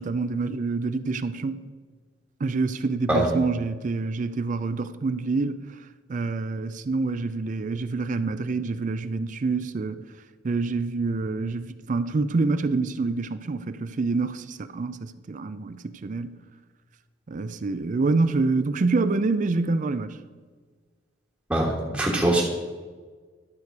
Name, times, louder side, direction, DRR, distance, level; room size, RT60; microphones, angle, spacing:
voice 1, 0.0-1.6 2.4-5.6 6.1-10.0 10.4-16.4 17.3-20.2, right 3 dB, 45° right, 0.4 m, -26 dB
voice 2, 21.5-22.4, right 1 dB, 10° right, 1.4 m, -22 dB
12.0 x 6.7 x 4.7 m
head